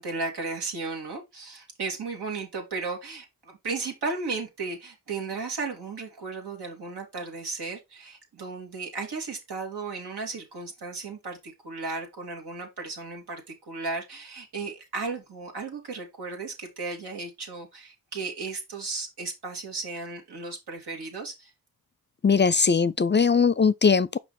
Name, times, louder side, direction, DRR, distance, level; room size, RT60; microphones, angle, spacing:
voice 1, 0.0-21.5, right 4 dB, 85° right, 2.8 m, -35 dB
voice 2, 22.2-24.2, left 5 dB, 30° left, 0.4 m, -20 dB
6.0 x 5.0 x 4.1 m
cardioid pair, 65°, 38 cm